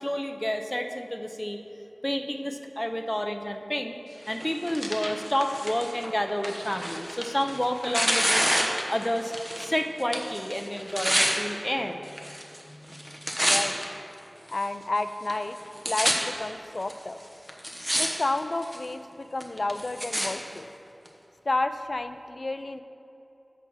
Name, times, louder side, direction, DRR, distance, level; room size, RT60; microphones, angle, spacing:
voice 1, 0.0-1.6 2.0-4.0 4.3-8.6 8.9-9.3 9.6-12.3 12.6-13.4, equal, 15° left, 6 dB, 0.6 m, -30 dB
Tearing, 4.3-9.7 10.0-11.3 12.1-12.6 12.9-13.8 14.5-14.6 15.3-15.4 15.6-16.1 16.9-17.0 17.5-18.1 18.4-18.8 19.4-20.3 21.1-21.2, equal, 15° right, 1.0 m, -28 dB
voice 2, 13.4-13.8 14.5-15.6 15.9-17.2 17.9-20.7 21.5-22.8, left 2 dB, 70° left, 10 dB, 0.3 m, -31 dB
8.1 x 5.8 x 4.7 m, 3.0 s
wide cardioid pair, 50°, 0 cm